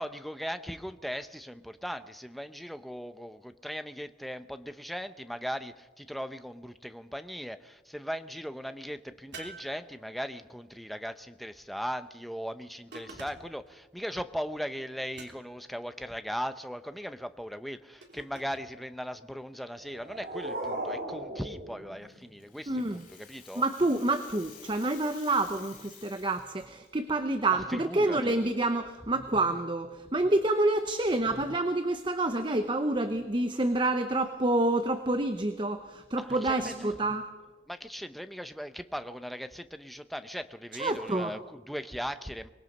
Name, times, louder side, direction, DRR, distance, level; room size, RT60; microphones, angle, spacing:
voice 1, 0.0-23.6 27.7-28.3 36.1-36.7 37.7-42.5, equal, ahead, 0.7 m, -38 dB
sound 1, 9.3-10.4 12.9-13.7 15.1-15.7 18.0-18.7, right 3 dB, 75° right, 3.4 m, -48 dB
sound 2, 19.7-22.7, right 1 dB, 55° right, 3.6 m, -38 dB
Rattle (instrument), 22.1-26.9, left 7 dB, 50° left, 3.1 m, -52 dB
voice 2, 22.7-23.0 23.5-37.3 40.7-41.3, right 2 dB, 25° right, 0.9 m, -28 dB
24.5 x 20.5 x 5.4 m
head